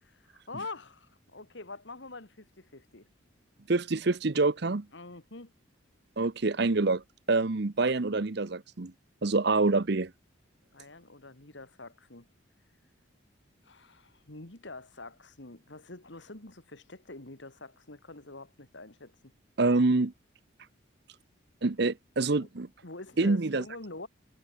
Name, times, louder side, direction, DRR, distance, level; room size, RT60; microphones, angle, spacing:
voice 1, 0.0-3.1 4.9-5.5 10.7-12.3 13.6-19.1 22.4-22.5 22.8-24.1, left 2 dB, 65° left, 2.2 m, -45 dB
voice 2, 3.7-4.9 6.2-7.0 7.3-8.9 9.2-10.1 19.6-20.1 21.6-22.7 23.2-23.6, right 3 dB, 55° right, 0.8 m, -26 dB
head